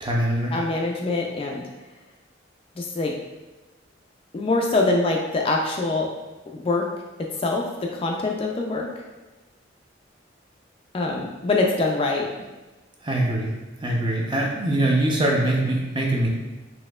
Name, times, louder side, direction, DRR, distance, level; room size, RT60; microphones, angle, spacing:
voice 1, 0.0-0.6 13.0-13.5 13.8-16.3, right 1 dB, 25° right, -1 dB, 0.6 m, -23 dB
voice 2, 0.5-1.6 2.8-3.1 4.3-6.1 6.5-6.8 7.2-8.9 10.9-12.3, left 3 dB, 30° left, 1 dB, 0.3 m, -24 dB
4.2 x 2.8 x 2.3 m, 1.2 s
head